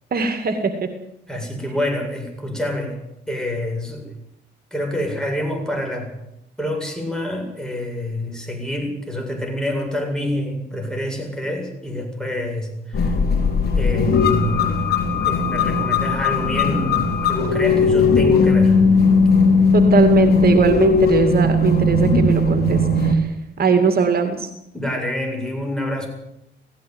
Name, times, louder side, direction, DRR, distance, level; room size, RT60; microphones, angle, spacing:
voice 1, 0.1-0.7 19.7-24.5, right 5 dB, 50° right, 7 dB, 2.3 m, -20 dB
voice 2, 1.3-3.0 3.3-4.1 4.7-6.1 6.6-13.2 13.7-14.5 15.2-17.0 17.3-18.8 24.7-26.1, left 1 dB, 5° left, 2 dB, 7.9 m, -27 dB
sound 1, 12.9-23.2, left 3 dB, 50° left, 4.3 m, -17 dB
17.5 x 16.0 x 9.6 m, 0.82 s
cardioid pair, 90°, 20 cm